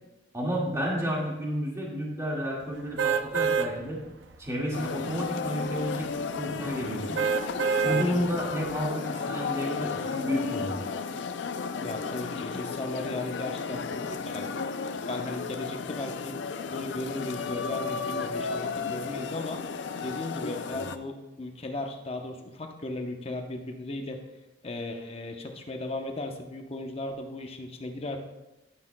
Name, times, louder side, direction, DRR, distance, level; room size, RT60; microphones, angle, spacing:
voice 1, 0.3-4.0 4.4-7.2 7.8-10.8, equal, 15° right, -3 dB, 1.8 m, -31 dB
sound 1, 3.0-3.7 4.2-4.4 7.2-8.1 8.7-8.8, right 6 dB, 85° right, 0.6 m, -25 dB
sound 2, 4.7-21.0, left 5 dB, 75° left, 0.5 m, -34 dB
voice 2, 7.9-8.3 11.7-14.5 15.1-16.4 16.7-19.6 20.0-24.2 24.6-28.2, left 2 dB, 35° left, 4 dB, 0.8 m, -36 dB
10.0 x 9.8 x 2.2 m, 1.0 s
head